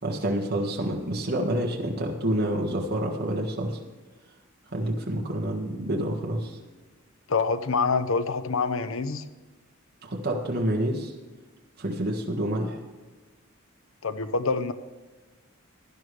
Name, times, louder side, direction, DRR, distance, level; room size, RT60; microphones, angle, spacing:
voice 1, 0.0-3.8 4.7-6.6 10.0-11.1 11.8-12.8, right 1 dB, 50° right, -1 dB, 1.7 m, -28 dB
voice 2, 7.3-9.2 14.0-14.7, left 4 dB, 75° left, 11 dB, 0.8 m, -26 dB
16.5 x 11.0 x 3.3 m, 1.3 s
head